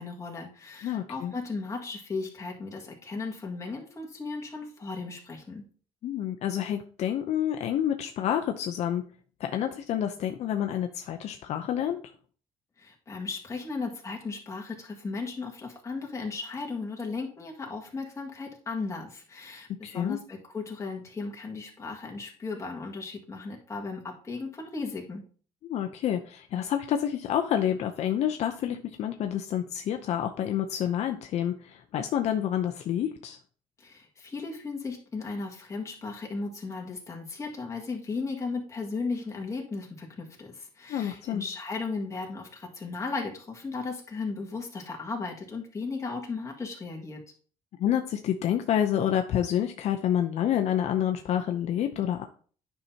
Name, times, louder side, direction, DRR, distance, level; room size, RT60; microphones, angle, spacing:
voice 1, 0.0-5.6 12.8-25.2 33.8-47.2, left 4 dB, 25° left, 0 dB, 1.9 m, -36 dB
voice 2, 0.8-1.3 6.0-9.0 9.4-12.0 19.8-20.2 25.6-33.4 40.9-41.4 47.8-52.2, left 10 dB, 60° left, 5 dB, 0.6 m, -28 dB
9.6 x 5.7 x 2.8 m, 0.44 s
cardioid pair, 130°, 12 cm